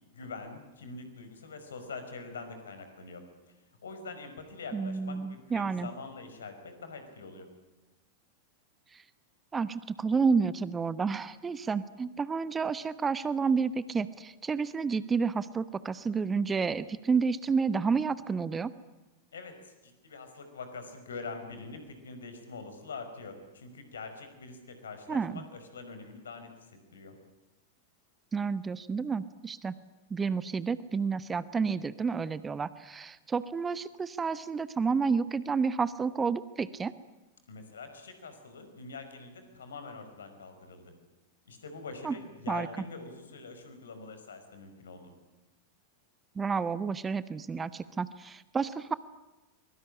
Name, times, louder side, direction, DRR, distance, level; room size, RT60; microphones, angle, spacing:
voice 1, 0.1-3.2 3.5-7.5 19.3-27.2 37.5-40.9 41.5-45.1, left 4 dB, 70° left, 8 dB, 5.2 m, -44 dB
voice 2, 4.7-5.9 8.9-9.0 9.5-18.7 25.1-25.4 28.3-29.7 30.1-36.9 42.0-42.2 42.5-42.7 46.3-48.9, right 5 dB, 15° right, 16 dB, 1.0 m, -30 dB
23.5 x 22.5 x 9.9 m, 1.1 s
figure-of-eight pair, 90°, 0 cm